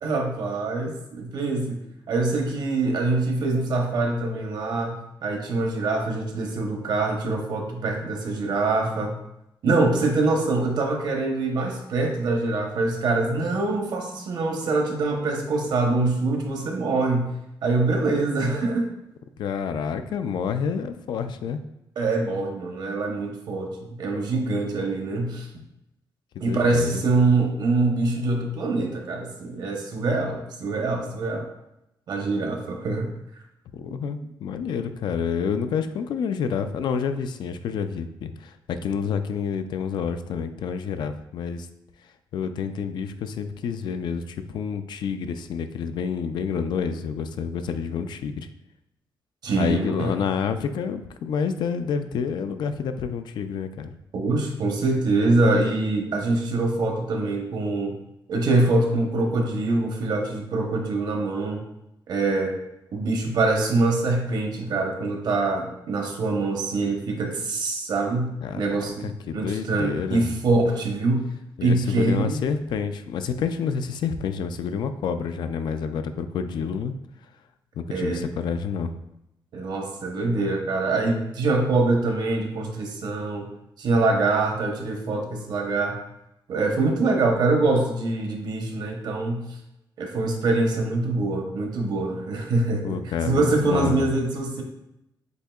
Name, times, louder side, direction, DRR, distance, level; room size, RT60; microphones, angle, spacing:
voice 1, 0.0-9.2 9.6-17.3 17.6-18.9 22.0-25.5 26.4-31.5 32.1-33.1 49.4-50.2 54.1-58.0 58.3-61.6 62.1-62.6 62.9-71.2 71.6-72.4 77.9-78.2 79.5-83.5 83.8-86.0 86.5-89.4 90.0-94.6, right 3 dB, 60° right, 2 dB, 0.9 m, -24 dB
voice 2, 19.4-21.6 26.4-27.0 33.7-41.7 42.3-48.5 49.6-53.9 68.4-68.6 69.0-70.3 71.6-76.9 77.8-79.0 92.8-94.0, left 6 dB, 70° left, 9 dB, 0.4 m, -28 dB
7.9 x 2.7 x 2.3 m, 0.85 s
cardioid pair, 130°, 8 cm